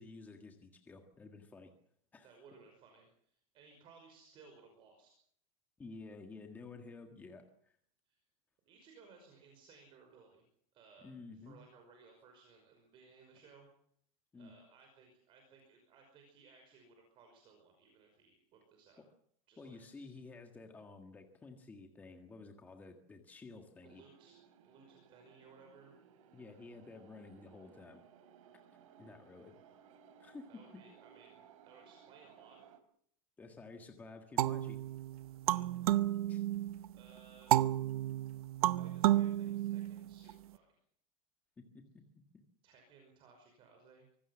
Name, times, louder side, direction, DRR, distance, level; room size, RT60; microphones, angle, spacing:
voice 1, 0.0-1.7 2.1-2.3 5.8-7.7 11.0-11.6 14.3-14.5 19.6-24.0 26.3-28.0 29.0-29.5 30.2-30.6 33.4-34.8 36.3-36.4 41.6-42.0, left 3 dB, 10° left, 4 dB, 1.7 m, -52 dB
voice 2, 2.2-5.2 8.1-8.2 8.7-10.4 10.7-13.7 14.4-19.0 19.5-20.1 23.3-23.4 23.8-24.4 24.6-25.9 30.5-31.4 31.6-32.6 35.4-35.6 36.9-37.5 38.7-40.7 42.6-44.1, right 4 dB, 25° right, 3 dB, 5.5 m, -61 dB
sound 1, 23.8-32.8, right 8 dB, 65° right, 3.5 m, -61 dB
sound 2, 34.4-36.9 37.5-40.3, right 14 dB, 85° right, 1.0 m, -32 dB
25.0 x 18.5 x 7.3 m, 0.66 s
supercardioid pair, 175°, 18 cm